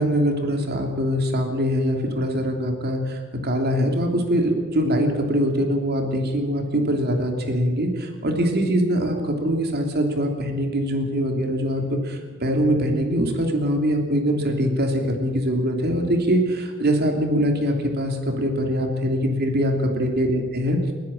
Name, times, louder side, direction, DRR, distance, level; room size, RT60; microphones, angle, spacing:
voice 1, 0.0-20.9, equal, 50° right, 3 dB, 3.1 m, -23 dB
29.5 x 10.5 x 9.0 m, 1.5 s
head